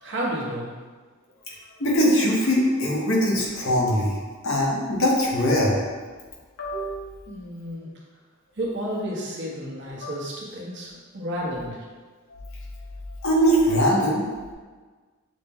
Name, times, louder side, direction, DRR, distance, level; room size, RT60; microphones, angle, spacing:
voice 1, 0.0-0.7 7.3-8.0 8.5-11.8, equal, 60° right, -4 dB, 1.1 m, -31 dB
voice 2, 1.8-4.2 4.4-5.7 6.6-7.0 10.0-10.1 13.2-14.3, equal, 75° left, -4 dB, 1.1 m, -21 dB
6.4 x 2.2 x 3.5 m, 1.4 s
head